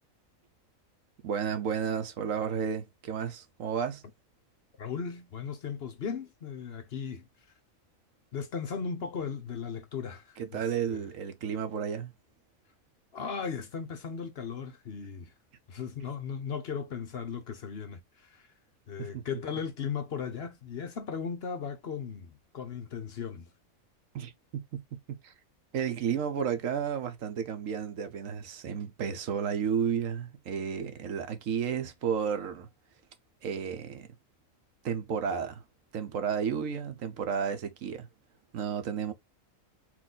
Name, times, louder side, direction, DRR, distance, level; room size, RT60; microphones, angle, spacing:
voice 1, 1.2-4.0 10.4-12.1 19.0-19.2 24.1-25.3 25.7-32.7 33.4-34.1 34.8-35.6 35.9-38.1 38.5-39.1, right 7 dB, 75° right, 1.2 m, -32 dB
voice 2, 4.8-7.3 8.3-10.6 10.9-11.0 13.1-15.3 15.7-18.5 18.9-23.5, left 6 dB, 55° left, 0.9 m, -37 dB
4.4 x 2.6 x 3.8 m
omnidirectional pair, 1.4 m